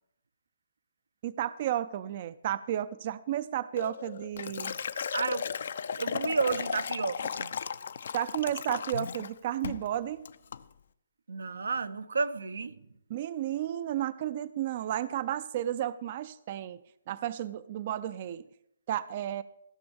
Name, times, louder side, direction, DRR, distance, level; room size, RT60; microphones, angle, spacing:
voice 1, 1.2-4.7 8.1-10.3 13.1-16.8 17.1-18.4 18.9-19.4, right 12 dB, 40° right, 0.4 m, -33 dB
Liquid, 3.8-9.3 9.6-9.9 10.3-10.6, left 6 dB, 65° left, 0.6 m, -35 dB
voice 2, 5.1-5.5 6.0-7.5 11.3-12.9, right 4 dB, 85° right, 0.7 m, -31 dB
15.5 x 6.1 x 7.0 m
hypercardioid pair, 155°, 0 cm